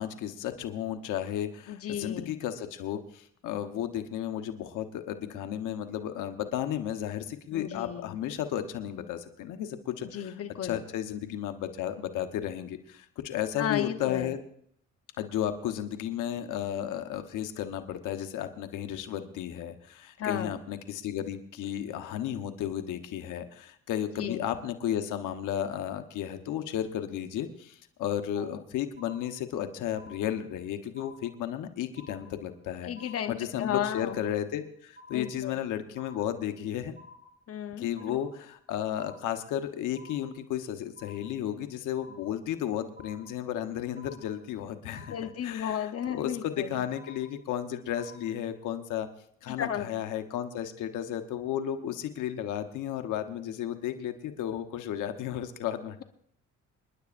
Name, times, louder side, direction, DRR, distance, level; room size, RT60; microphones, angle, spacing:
voice 1, 0.0-10.3 10.6-14.4 15.2-32.9 33.3-36.9 37.8-45.1 45.4-49.1 49.4-56.0, left 10 dB, 90° left, 8 dB, 1.1 m, -33 dB
voice 2, 1.7-2.4 7.5-8.1 10.1-10.8 13.6-14.3 20.2-20.6 24.2-24.4 28.4-28.6 32.8-34.2 35.1-35.5 37.5-38.2 45.1-46.8 49.5-49.9, left 9 dB, 50° left, 8 dB, 1.0 m, -34 dB
sound 1, 29.0-29.6 30.0-30.6 31.0-31.6 32.0-32.6 33.0-33.6 34.0-34.6 35.0-35.6 36.0-36.6 37.0-37.6 38.0-38.6 39.0-39.6 40.0-40.6 41.0-41.6 42.0-42.6 43.0-43.6 44.0-44.6 45.0-45.6 46.0-46.6 47.0-47.6 48.0-48.6, left 2 dB, 30° right, 3.8 m, -53 dB
27.5 x 11.0 x 2.6 m, 0.65 s
cardioid pair, 90°, 30 cm